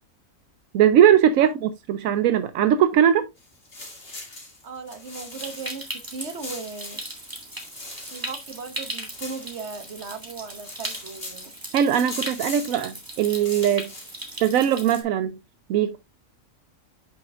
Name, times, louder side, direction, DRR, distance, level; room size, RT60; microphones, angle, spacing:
voice 1, 0.7-3.3 11.7-13.9 14.4-15.4 15.7-16.0, right 9 dB, 80° right, 1.0 m, -20 dB
sound 1, 3.4-5.9 6.2-10.1 10.4-11.5 11.9-12.8 13.2-14.4, left 2 dB, 45° left, 2.7 m, -41 dB
voice 2, 4.6-7.0 8.1-11.5, right 4 dB, 55° right, 1.4 m, -37 dB
Stream, 5.3-15.0, right 1 dB, 15° right, 1.8 m, -38 dB
8.5 x 5.9 x 2.4 m
omnidirectional pair, 1.4 m